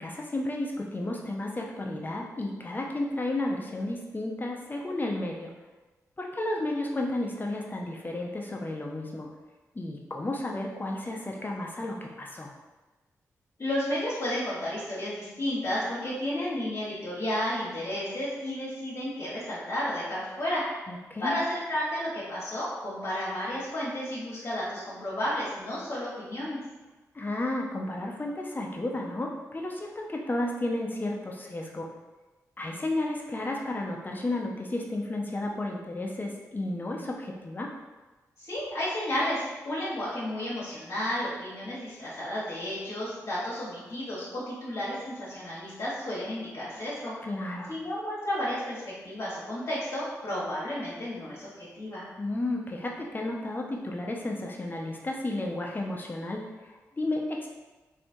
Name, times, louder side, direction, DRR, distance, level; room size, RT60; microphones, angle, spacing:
voice 1, 0.0-5.5 6.2-9.3 9.7-12.5 20.9-21.4 27.1-31.9 32.6-37.7 47.2-47.7 52.2-57.5, left 2 dB, 30° left, 0 dB, 0.7 m, -32 dB
voice 2, 13.6-20.6 21.2-26.6 38.4-47.1 47.7-52.0, left 1 dB, 55° left, -9 dB, 1.2 m, -32 dB
3.2 x 2.7 x 2.6 m, 1.2 s
supercardioid pair, 40°, 7 cm